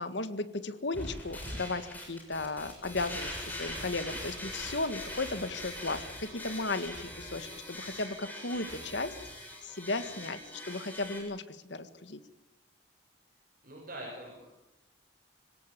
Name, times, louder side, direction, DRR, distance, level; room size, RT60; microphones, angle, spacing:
voice 1, 0.0-9.1 9.6-12.2, left 2 dB, 70° left, 11 dB, 1.8 m, -35 dB
sound 1, 0.9-11.2, left 1 dB, 10° left, 7.1 m, -42 dB
voice 2, 13.6-14.5, right 1 dB, 50° right, -1 dB, 6.7 m, -43 dB
26.0 x 17.5 x 8.5 m, 0.92 s
head